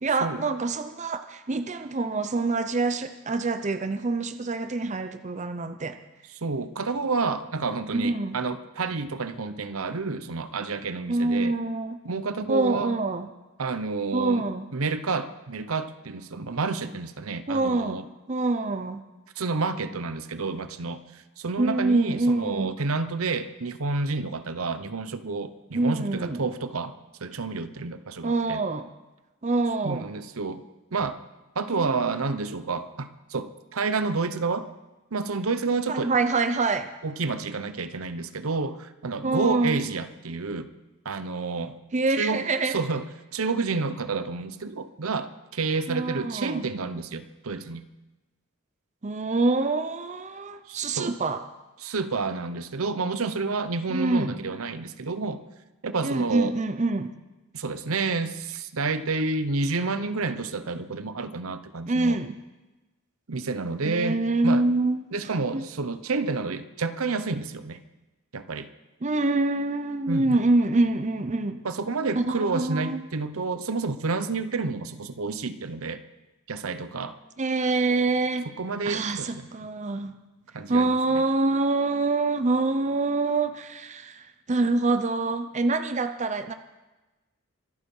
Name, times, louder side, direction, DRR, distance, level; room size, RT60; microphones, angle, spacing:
voice 1, 0.0-6.0 7.9-8.4 11.1-12.0 12.5-13.3 14.1-14.7 17.5-18.0 18.3-19.0 21.6-22.7 25.7-26.4 28.2-28.9 29.4-30.0 31.7-32.2 35.9-36.9 39.2-39.8 41.9-42.7 45.9-46.6 49.0-51.4 53.9-54.4 56.0-57.1 61.9-62.4 63.9-65.0 65.5-65.6 69.0-71.6 72.2-73.0 77.4-78.4 78.9-80.1 80.7-86.5, right 3 dB, 35° right, 10 dB, 0.6 m, -26 dB
voice 2, 6.4-11.5 12.0-13.0 13.6-18.1 19.4-26.9 27.2-28.6 29.8-30.6 30.9-31.2 31.6-34.7 35.1-36.1 37.0-40.7 41.0-41.8 42.2-43.0 43.3-47.8 50.7-51.1 51.8-55.4 55.8-56.5 57.5-62.2 63.3-64.6 65.1-67.8 68.3-68.7 70.1-70.4 71.6-76.0 76.5-77.2 78.6-79.5 80.5-81.0, right 4 dB, 80° right, 11 dB, 0.9 m, -29 dB
24.0 x 8.4 x 5.5 m, 1.1 s
head